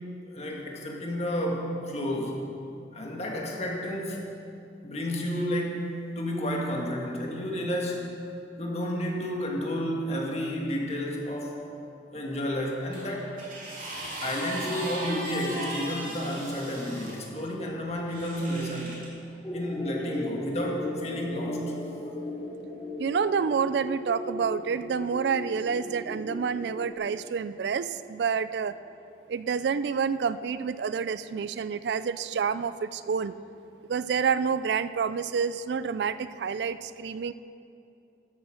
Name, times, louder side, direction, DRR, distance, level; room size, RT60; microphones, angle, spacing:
voice 1, 0.2-2.4 2.9-4.3 4.8-8.1 8.6-11.6 12.1-13.3 14.2-19.0 19.5-22.0, equal, 35° left, -1 dB, 1.8 m, -31 dB
sound 1, 12.9-17.2 18.1-19.1 20.0-20.2, right 1 dB, 50° right, 2.7 m, -37 dB
sound 2, 19.4-26.9, left 2 dB, 15° left, 1.0 m, -37 dB
voice 2, 23.0-28.7 29.3-33.3 33.9-37.3, right 6 dB, 70° right, 14 dB, 0.4 m, -28 dB
13.0 x 8.1 x 6.4 m, 2.6 s
head